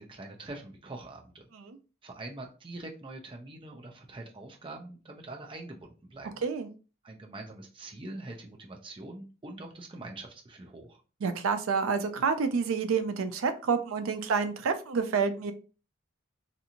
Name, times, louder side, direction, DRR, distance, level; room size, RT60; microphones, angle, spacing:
voice 1, 0.0-1.5 2.0-6.3 7.0-11.0, right 2 dB, 25° right, 2 dB, 0.5 m, -44 dB
voice 2, 11.2-15.5, right 5 dB, 80° right, 9 dB, 0.4 m, -28 dB
2.6 x 2.5 x 2.8 m, 0.35 s
head